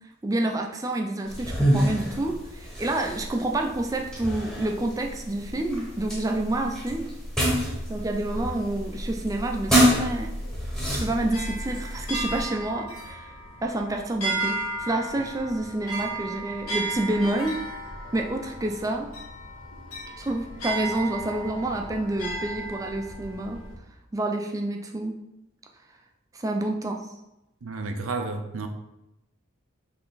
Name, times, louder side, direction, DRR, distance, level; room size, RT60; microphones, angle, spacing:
voice 1, 0.2-7.1 7.9-10.3 10.9-13.3 13.6-17.6 18.1-19.1 20.2-23.6 24.1-25.1 26.3-27.1, right 1 dB, 15° right, 3 dB, 0.3 m, -28 dB
sound 1, 1.3-12.4, equal, ahead, 0.9 m, -28 dB
sound 2, 10.0-23.8, right 2 dB, 85° left, 1.1 m, -35 dB
voice 2, 27.6-28.7, right 3 dB, 75° right, 6 dB, 0.5 m, -31 dB
3.8 x 3.3 x 4.0 m, 0.91 s
head